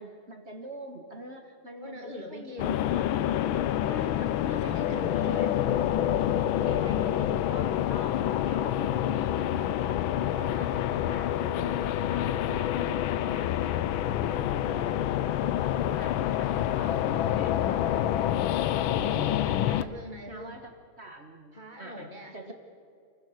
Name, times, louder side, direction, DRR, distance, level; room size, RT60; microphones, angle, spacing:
voice 1, 0.0-3.1 3.9-5.8 6.6-15.0 15.4-18.2 18.6-19.7 20.3-22.5, right 2 dB, 30° right, 4 dB, 1.7 m, -45 dB
voice 2, 1.8-3.7 4.4-5.5 19.7-20.6 21.5-22.5, left 1 dB, 25° left, 4 dB, 1.2 m, -43 dB
sound 1, 2.6-19.8, left 11 dB, 75° left, 1.4 m, -27 dB
27.5 x 16.0 x 8.0 m, 2.4 s
omnidirectional pair, 2.4 m